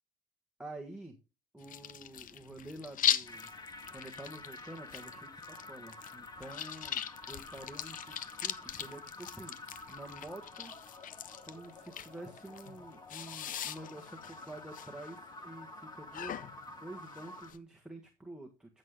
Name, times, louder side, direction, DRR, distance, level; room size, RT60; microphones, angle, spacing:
voice 1, 0.6-1.2 1.5-3.5 3.9-7.0 7.3-10.7 11.4-16.4 16.7-18.8, right 1 dB, 5° right, 2 dB, 1.5 m, -48 dB
sound 1, 1.6-17.6, left 10 dB, 55° left, 0.8 m, -40 dB
sound 2, 3.3-17.5, left 2 dB, 25° left, 1.9 m, -50 dB
13.5 x 6.5 x 3.7 m, 0.29 s
cardioid pair, 110°, 17 cm